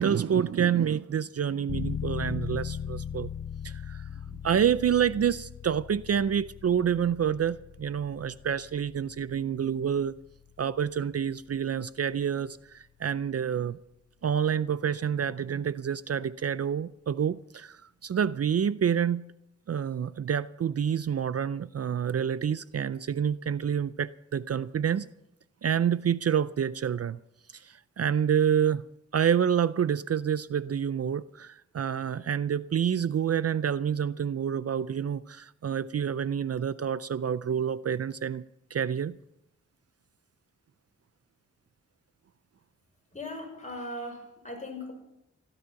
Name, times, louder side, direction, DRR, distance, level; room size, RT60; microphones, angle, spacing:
voice 1, 0.0-3.3 3.6-4.0 4.3-10.2 10.6-13.8 14.2-19.3 19.7-25.1 25.6-27.2 27.5-28.9 29.1-38.4 38.7-39.2, right 8 dB, 55° right, 0.4 m, -28 dB
sound 1, 1.7-12.2, left 8 dB, 55° left, 0.6 m, -39 dB
voice 2, 43.1-44.9, left 1 dB, 25° left, 5.4 m, -38 dB
16.5 x 12.0 x 5.8 m
wide cardioid pair, 75°, 29 cm